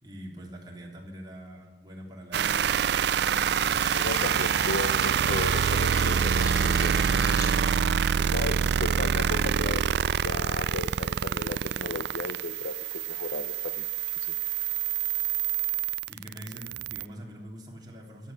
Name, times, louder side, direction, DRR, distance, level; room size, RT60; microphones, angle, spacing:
voice 1, 0.0-2.7 16.1-18.3, equal, 20° right, -2 dB, 3.1 m, -44 dB
sound 1, 2.3-17.1, right 7 dB, 65° right, 0.4 m, -26 dB
sound 2, 3.3-8.0, left 1 dB, 20° left, 2.3 m, -39 dB
voice 2, 3.9-7.4 8.2-9.9 10.2-13.9 14.2-14.4, left 3 dB, 75° left, 14 dB, 0.6 m, -35 dB
14.0 x 11.0 x 7.9 m, 1.3 s
head